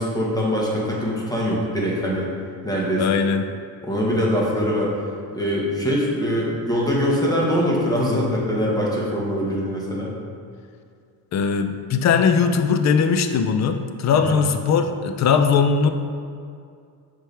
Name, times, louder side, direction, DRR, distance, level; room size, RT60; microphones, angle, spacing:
voice 1, 0.0-2.3 2.6-3.2 3.8-4.9 5.3-10.1 14.1-14.4, equal, 10° left, -4 dB, 1.2 m, -23 dB
voice 2, 3.0-3.5 11.3-15.9, left 6 dB, 40° left, 8 dB, 0.4 m, -19 dB
6.1 x 4.6 x 3.3 m, 2.3 s
cardioid pair, 120°, 42 cm